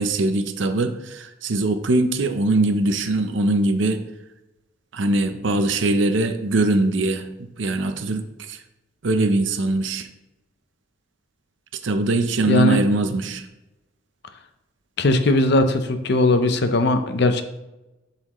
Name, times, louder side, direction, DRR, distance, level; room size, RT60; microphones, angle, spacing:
voice 1, 0.0-4.0 4.9-8.6 9.0-10.1 11.8-13.5, right 2 dB, 70° right, 8 dB, 0.6 m, -22 dB
voice 2, 12.5-12.8 15.0-17.4, left 2 dB, 60° left, 8 dB, 0.6 m, -19 dB
11.0 x 4.1 x 3.1 m, 0.98 s
head